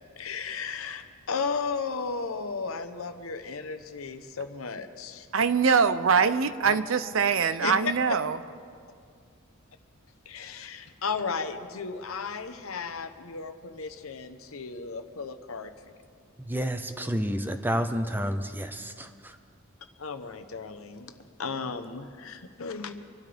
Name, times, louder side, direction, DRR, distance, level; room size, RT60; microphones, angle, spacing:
voice 1, 0.2-5.3 6.6-6.8 7.6-7.7 10.3-15.7 20.0-21.1 21.4-22.9, left 5 dB, 90° left, 8 dB, 0.9 m, -35 dB
voice 2, 5.3-8.4, right 6 dB, 70° right, 13 dB, 0.6 m, -23 dB
voice 3, 16.4-19.1, equal, 10° right, 8 dB, 0.7 m, -29 dB
25.5 x 12.5 x 3.5 m, 2.2 s
head